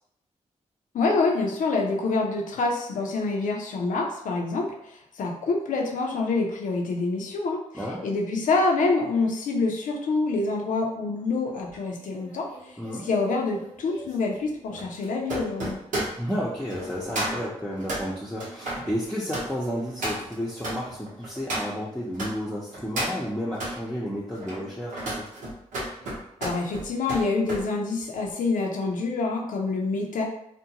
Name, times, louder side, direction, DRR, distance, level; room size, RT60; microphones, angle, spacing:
voice 1, 0.9-12.8 13.0-15.8 26.4-30.2, left 3 dB, 80° left, 0 dB, 0.5 m, -26 dB
sound 1, 11.7-22.3 22.7-23.8 24.3-27.7 28.0-28.3, right 1 dB, 85° right, 0.8 m, -34 dB
voice 2, 12.8-13.1 16.2-25.3, equal, 5° left, -6 dB, 0.6 m, -32 dB
2.5 x 2.2 x 2.8 m, 0.76 s
cardioid pair, 50°, 13 cm